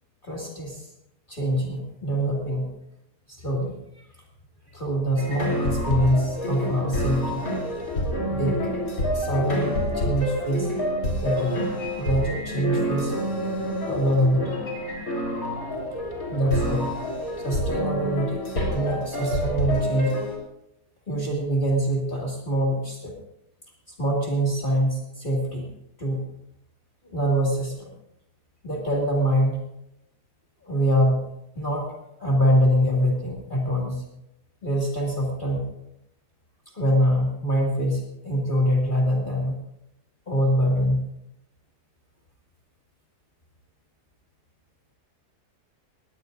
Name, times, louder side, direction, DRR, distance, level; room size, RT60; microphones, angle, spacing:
voice 1, 0.2-0.8 1.3-2.7 3.3-3.7 4.7-7.4 8.3-8.7 9.1-10.7 11.2-11.7 12.0-13.1 13.9-14.5 16.3-16.9 17.4-18.4 18.7-20.2 21.1-23.1 24.0-25.7 26.0-26.2 27.0-27.9 28.6-29.6 30.6-31.2 31.6-31.9 32.2-34.0 34.6-35.6 36.7-39.5 40.3-41.1, equal, 30° left, -2 dB, 2.5 m, -24 dB
sound 1, 5.2-20.4, equal, 55° left, 3.7 m, -28 dB
20.0 x 17.5 x 2.6 m, 0.82 s
omnidirectional pair, 1.7 m